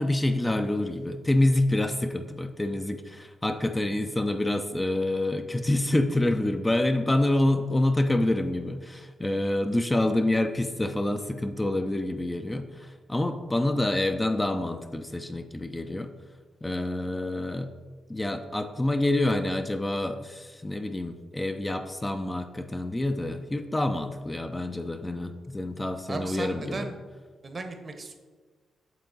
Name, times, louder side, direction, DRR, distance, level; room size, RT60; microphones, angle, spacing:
voice 1, 0.0-16.1 16.6-17.7 18.1-26.9, left 1 dB, 20° left, 7 dB, 0.4 m, -27 dB
voice 2, 26.1-27.0 27.4-28.1, right 3 dB, 45° right, 6 dB, 0.8 m, -36 dB
7.3 x 3.7 x 3.9 m, 1.4 s
supercardioid pair, 55°, 0 cm